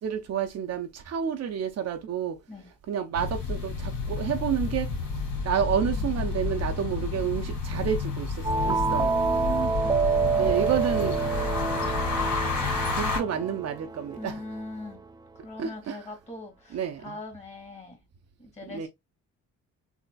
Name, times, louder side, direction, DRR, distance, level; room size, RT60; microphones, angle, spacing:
voice 1, 0.0-2.4 2.9-4.9 5.4-8.3 8.6-9.1 10.4-11.1 13.0-14.4 15.6-16.0 16.7-17.2 18.7-18.9, right 8 dB, 55° right, 0.7 m, -29 dB
sound 1, 3.1-13.2, left 4 dB, 75° left, 2.5 m, -30 dB
voice 2, 5.7-6.4 8.7-10.7 13.0-13.2 14.2-15.0 15.4-18.0 18.4-18.9, equal, 20° left, 2.0 m, -40 dB
sound 2, 8.4-14.9, right 5 dB, 15° right, 0.3 m, -28 dB
4.0 x 2.8 x 2.3 m
cardioid pair, 90°, 30 cm